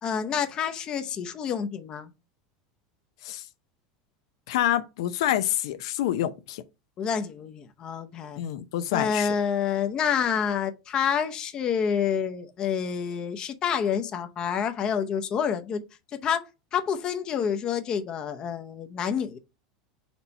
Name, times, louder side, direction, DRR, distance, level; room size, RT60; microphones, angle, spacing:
voice 1, 0.0-2.1 7.0-8.4 8.9-15.8 16.2-16.4 16.7-19.4, left 7 dB, 30° left, 0.7 m, -28 dB
voice 2, 4.5-6.6 8.4-9.3, left 12 dB, 75° left, 0.6 m, -27 dB
4.4 x 4.1 x 5.3 m
supercardioid pair, 150°, 3 cm